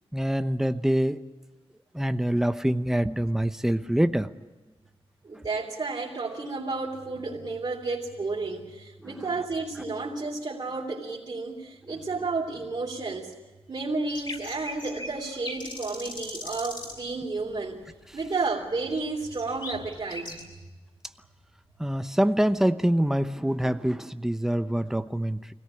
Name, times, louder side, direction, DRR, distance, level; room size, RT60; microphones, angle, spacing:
voice 1, 0.1-1.2 1.9-4.3 9.0-9.3 21.8-25.5, equal, 5° right, 10 dB, 0.9 m, -25 dB
voice 2, 5.2-13.3 13.7-17.8 18.1-20.6, right 3 dB, 50° right, -6 dB, 3.2 m, -32 dB
sound 1, 14.1-17.1 17.4-17.9 18.3-20.4, left 2 dB, 50° left, 7.0 m, -39 dB
24.5 x 17.5 x 9.9 m, 1.2 s
wide cardioid pair, 100°, 10 cm